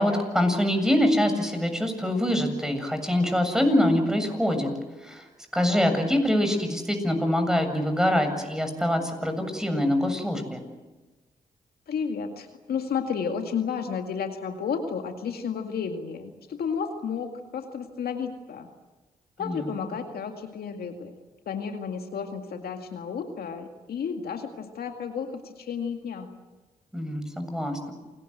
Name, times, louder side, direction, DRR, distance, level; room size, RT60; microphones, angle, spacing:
voice 1, 0.0-4.7 5.0-5.2 5.5-10.6 19.4-19.7 26.9-27.9, left 1 dB, 5° right, 6 dB, 7.3 m, -24 dB
voice 2, 11.9-18.7 19.4-21.1 21.5-26.3, left 6 dB, 70° left, 5 dB, 2.1 m, -32 dB
28.5 x 18.5 x 8.0 m, 1.2 s
supercardioid pair, 45°, 16 cm